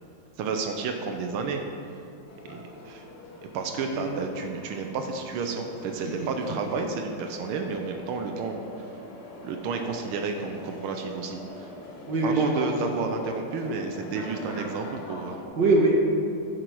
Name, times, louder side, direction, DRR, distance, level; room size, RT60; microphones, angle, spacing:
voice 1, 0.4-1.6 2.4-3.0 3.4-8.9 9.4-11.7 12.2-15.4, right 4 dB, 85° right, 4 dB, 1.7 m, -31 dB
sound 1, 2.3-15.5, left 1 dB, 90° left, 2.2 m, -44 dB
voice 2, 12.1-12.7 15.6-16.1, right 2 dB, 60° right, -2 dB, 2.1 m, -23 dB
10.0 x 7.8 x 4.7 m, 2.6 s
omnidirectional pair, 2.3 m